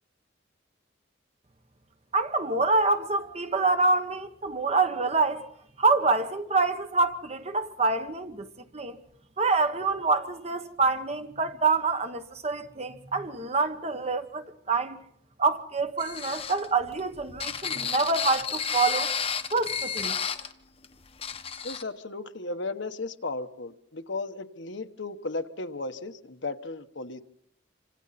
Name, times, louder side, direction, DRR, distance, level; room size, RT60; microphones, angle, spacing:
voice 1, 2.1-5.5 5.8-8.5 8.7-9.0 9.4-15.0 15.4-19.1 19.5-20.2, right 3 dB, 30° right, 1.2 m, -26 dB
sound 1, 16.0-20.5 20.8-20.9 21.2-21.8, left 7 dB, 30° left, 1.1 m, -31 dB
voice 2, 21.6-27.2, left 3 dB, 65° left, 1.2 m, -35 dB
27.0 x 26.0 x 4.2 m
head